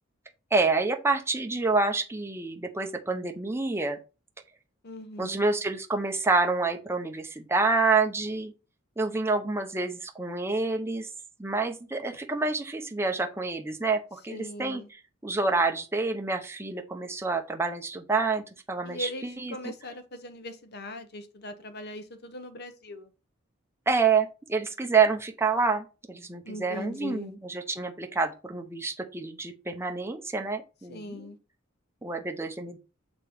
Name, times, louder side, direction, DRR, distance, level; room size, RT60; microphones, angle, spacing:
voice 1, 0.5-4.0 5.2-8.5 9.0-11.1 11.4-14.8 15.2-18.4 18.7-19.5 23.9-31.3 32.0-32.8, right 4 dB, 10° right, 0.7 m, -28 dB
voice 2, 4.8-5.5 14.3-14.9 18.8-23.1 26.4-27.3 30.9-31.4, left 1 dB, 55° left, 1.0 m, -40 dB
6.6 x 3.0 x 5.1 m
head